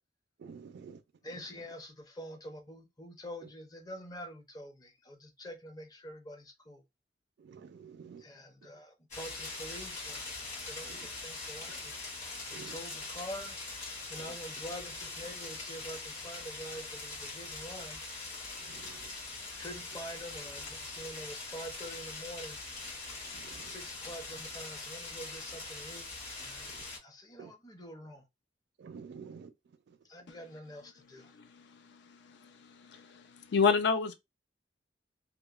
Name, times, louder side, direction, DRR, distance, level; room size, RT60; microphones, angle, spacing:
voice 1, 0.4-1.0 7.5-8.2 12.5-12.8 27.4-27.5 28.8-29.5, right 6 dB, 65° right, 0.4 m, -47 dB
voice 2, 1.2-6.8 8.2-10.2 10.6-11.9 12.7-13.6 14.1-18.0 19.6-22.6 23.6-26.1 26.4-26.7 27.0-28.2 30.1-31.3, equal, 20° left, 0.6 m, -46 dB
sound 1, 9.1-27.0, left 3 dB, 40° left, 1.7 m, -42 dB
voice 3, 31.2-34.1, left 5 dB, 65° left, 0.4 m, -31 dB
2.8 x 2.0 x 2.3 m
head